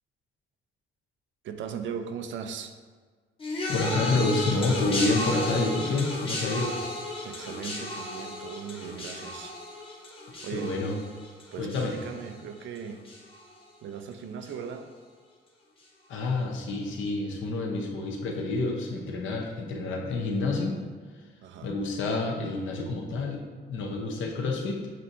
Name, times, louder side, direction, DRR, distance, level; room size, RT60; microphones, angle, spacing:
voice 1, 1.4-2.7 7.2-9.5 10.4-10.8 11.5-13.1 13.8-14.9 21.4-21.8, right 7 dB, 70° right, 8 dB, 0.4 m, -38 dB
sound 1, 3.4-12.8 13.0-13.6 14.4-14.5, left 2 dB, 25° left, 0.8 m, -34 dB
voice 2, 3.7-6.8 10.3-10.9 11.6-11.9 16.1-20.8 21.6-23.4 23.7-24.8, left 3 dB, 75° left, 0 dB, 0.8 m, -28 dB
7.4 x 2.7 x 2.6 m, 1.5 s
cardioid pair, 150°, 20 cm